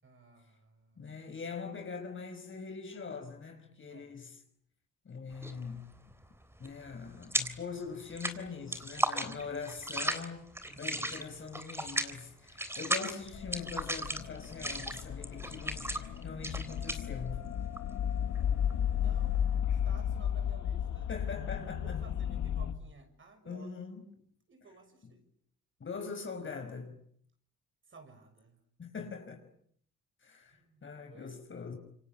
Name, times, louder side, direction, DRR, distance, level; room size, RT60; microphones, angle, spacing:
voice 1, 0.0-1.2 3.9-4.1 9.2-9.4 10.6-11.0 15.4-16.3 18.3-19.4 19.6-21.1 21.8-23.7 24.5-25.2 27.9-28.6 30.6-31.4, right 3 dB, 40° right, 6.8 m, -57 dB
voice 2, 1.0-4.4 5.1-5.9 6.6-10.5 10.8-17.4 21.1-22.0 23.5-24.2 25.8-27.0 28.8-29.4 30.2-31.8, left 5 dB, 40° left, 5.4 m, -42 dB
sound 1, 5.3-5.7 6.0-7.7 8.0-19.5, right 1 dB, 10° right, 3.6 m, -36 dB
sound 2, 13.3-22.7, left 9 dB, 70° left, 2.2 m, -34 dB
27.5 x 24.0 x 8.8 m
cardioid pair, 90°, 30 cm